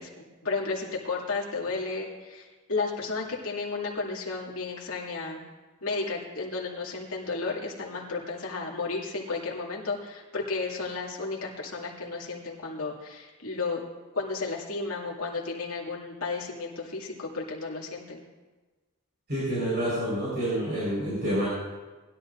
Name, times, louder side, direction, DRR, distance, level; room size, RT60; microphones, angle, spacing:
voice 1, 0.0-5.4 5.8-13.8 14.1-18.2, left 3 dB, 75° left, -3 dB, 2.5 m, -33 dB
voice 2, 19.3-21.5, equal, 50° right, -8 dB, 4.8 m, -28 dB
20.0 x 11.5 x 2.6 m, 1.3 s
head